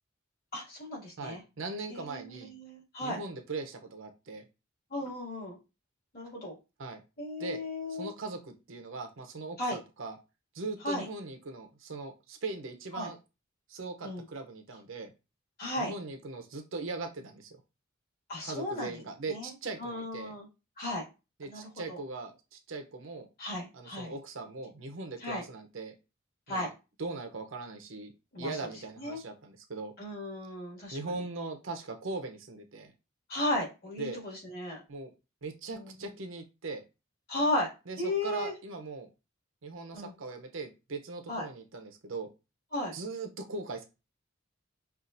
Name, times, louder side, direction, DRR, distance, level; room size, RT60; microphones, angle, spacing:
voice 1, 0.5-1.4 1.9-3.2 4.9-5.6 6.1-6.5 7.2-8.1 9.6-9.8 10.8-11.1 12.9-13.1 14.0-14.2 15.6-15.9 18.3-18.9 19.3-19.5 19.8-20.5 20.8-21.0 21.5-22.0 23.4-24.1 25.2-25.4 26.5-26.7 28.3-28.5 29.0-29.2 30.0-31.0 33.3-34.8 35.7-35.9 37.3-37.7 38.0-38.5 39.9-40.1 41.3-41.4 42.7-42.9, left 1 dB, 50° left, -4 dB, 2.1 m, -35 dB
voice 2, 1.2-2.5 3.0-4.4 6.8-7.0 7.4-7.6 7.9-10.2 10.5-13.2 13.7-15.1 15.8-17.6 18.4-20.3 21.4-23.3 23.7-25.9 26.5-26.7 27.0-28.1 28.4-29.9 30.9-32.9 34.0-34.2 34.9-35.1 35.4-36.8 37.9-39.1 39.6-42.3 42.9-43.8, right 3 dB, 70° right, 5 dB, 0.7 m, -40 dB
5.6 x 2.4 x 2.6 m, 0.28 s
head